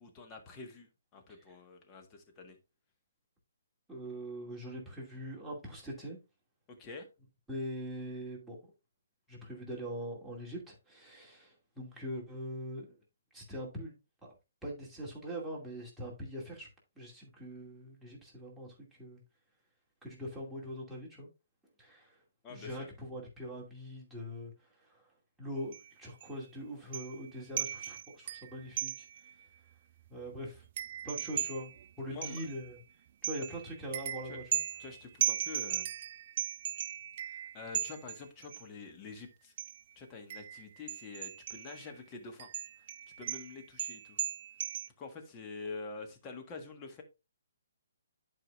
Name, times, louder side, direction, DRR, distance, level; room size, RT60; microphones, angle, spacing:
voice 1, 0.0-2.6 6.7-7.1 22.4-22.9 32.1-32.4 34.2-34.4 34.8-35.9 37.3-39.5 39.9-42.5 42.8-42.9 43.2-44.2 45.0-47.0, left 4 dB, 25° left, 1.5 m, -46 dB
voice 2, 3.9-6.2 7.5-8.6 9.3-12.9 13.3-14.0 14.2-14.4 14.6-16.7 17.0-19.2 20.0-21.3 21.8-22.2 22.5-25.1 25.4-29.4 30.1-30.6 31.0-31.7 32.0-32.8 33.2-34.4, equal, ahead, 2.4 m, -42 dB
sound 1, 25.7-25.9 26.2-26.3 26.9-27.3 27.6-29.3 29.7-29.8 30.1-32.8 33.2-38.6 39.6-39.8 40.3-41.9 42.4-44.9, right 10 dB, 45° right, 0.3 m, -37 dB
11.0 x 4.9 x 2.5 m
figure-of-eight pair, 135°, 0 cm